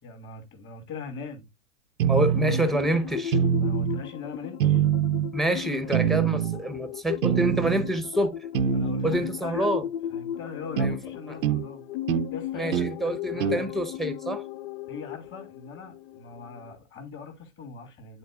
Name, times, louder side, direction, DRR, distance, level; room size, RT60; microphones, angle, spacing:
voice 1, 0.0-1.5 3.6-4.8 8.7-9.8 10.1-11.8 12.3-13.7 14.9-18.2, left 4 dB, 30° left, 2.6 m, -41 dB
voice 2, 2.0-3.4 5.3-8.7 9.0-9.8 10.8-11.0 12.5-14.4, right 1 dB, ahead, 1.0 m, -27 dB
sound 1, 2.0-2.7 3.3-4.0 4.6-5.3 5.9-6.6 7.2-7.9 8.5-9.2 10.8-11.0 11.4-11.6 12.1-12.3 12.7-12.9 13.4-13.6, right 9 dB, 75° right, 0.7 m, -24 dB
sound 2, 2.3-16.8, left 11 dB, 55° left, 0.6 m, -36 dB
11.5 x 4.2 x 2.5 m
hypercardioid pair, 115°, 40 cm